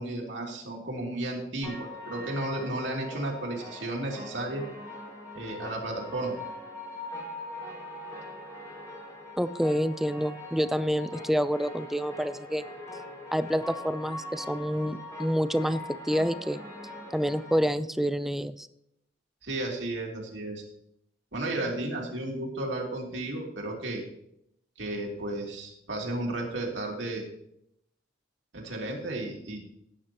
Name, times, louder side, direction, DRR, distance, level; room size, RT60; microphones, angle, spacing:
voice 1, 0.0-4.6 5.3-6.3 19.4-20.6 21.3-24.0 24.8-27.2 28.5-29.6, right 1 dB, 70° right, -1 dB, 2.9 m, -33 dB
sound 1, 1.6-17.6, left 1 dB, 20° left, 4.2 m, -42 dB
voice 2, 9.4-12.6 13.3-16.6 17.1-18.7, equal, ahead, 13 dB, 0.4 m, -28 dB
18.0 x 9.5 x 3.0 m, 0.76 s
head